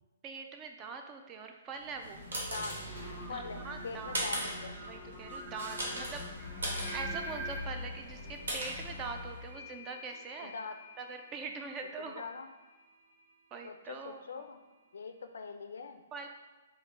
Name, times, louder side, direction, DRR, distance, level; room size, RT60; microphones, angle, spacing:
voice 1, 0.2-2.3 3.3-4.2 4.9-6.2 6.9-10.5 11.0-12.2 13.5-14.5 16.1-16.3, right 4 dB, 25° right, 4 dB, 0.3 m, -43 dB
sound 1, 1.8-9.6, equal, 85° right, 1.1 m, -39 dB
Singing, 2.6-7.6, right 1 dB, 5° left, 0.7 m, -45 dB
voice 2, 3.3-4.8 10.4-10.8 12.0-12.5 13.6-14.6 14.9-16.0, left 4 dB, 85° left, 7 dB, 0.3 m, -43 dB
sound 2, 6.4-15.3, left 6 dB, 55° right, 1.4 m, -55 dB
3.7 x 2.1 x 3.2 m, 1.3 s
hypercardioid pair, 145°, 0 cm